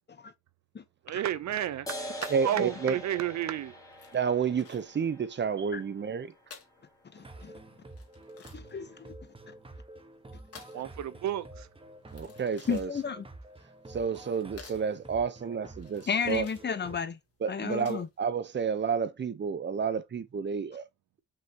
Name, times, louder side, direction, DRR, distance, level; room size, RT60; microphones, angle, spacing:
voice 1, 1.1-1.9 2.2-3.7 10.7-11.7, right 11 dB, 65° right, 0.8 m, -32 dB
sound 1, 1.9-8.8, equal, 10° left, 2.8 m, -45 dB
sound 2, 2.1-18.3, left 6 dB, 50° left, 2.3 m, -54 dB
voice 2, 2.3-3.0 4.1-6.3 12.1-12.9 13.9-16.5 17.4-20.9, right 6 dB, 35° right, 0.9 m, -30 dB
voice 3, 7.1-7.6 8.7-9.1 9.5-9.6 12.7-13.3 16.1-17.2 17.5-18.1, left 6 dB, 35° left, 1.1 m, -33 dB
sound 3, 7.2-17.0, right 2 dB, 20° right, 1.4 m, -49 dB
5.7 x 5.5 x 2.9 m
cardioid pair, 90°, 30 cm